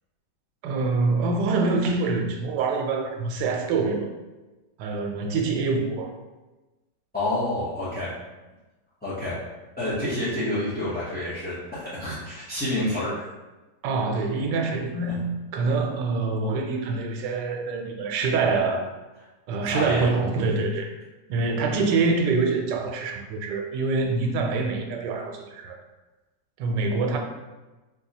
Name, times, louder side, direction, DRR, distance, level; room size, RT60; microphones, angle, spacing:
voice 1, 0.6-4.1 4.8-6.1 13.8-15.3 15.5-18.9 19.5-20.9 21.3-25.8 26.6-27.2, right 3 dB, 85° right, 3 dB, 1.2 m, -25 dB
voice 2, 7.1-8.1 9.0-9.4 9.8-13.2 19.6-20.0, left 1 dB, 10° left, -12 dB, 0.5 m, -28 dB
4.1 x 2.3 x 2.7 m, 1.1 s
omnidirectional pair, 1.9 m